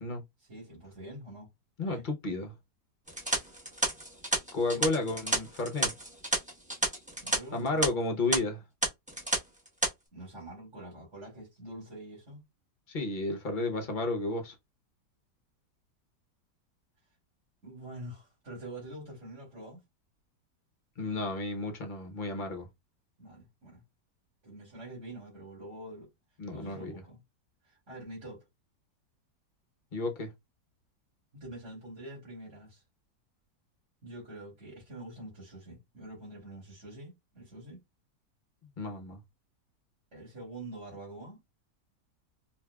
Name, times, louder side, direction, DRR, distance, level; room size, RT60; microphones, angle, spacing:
voice 1, 0.4-1.5 1.8-2.0 4.7-4.9 7.2-7.8 10.1-12.4 17.6-19.8 23.2-23.8 24.4-26.1 26.5-27.2 27.6-28.4 31.4-32.8 34.0-37.8 40.1-41.4, right 1 dB, 40° right, 2.7 m, -45 dB
voice 2, 1.8-2.5 4.5-5.9 7.5-8.6 12.9-14.5 21.0-22.7 26.4-26.9 29.9-30.3 38.8-39.2, left 2 dB, 50° left, 0.6 m, -32 dB
sound 1, 3.1-7.4 7.7-7.9 8.3-8.4 8.8-9.4 9.7-9.9, right 1 dB, 5° right, 0.6 m, -30 dB
4.8 x 2.7 x 2.2 m
omnidirectional pair, 1.8 m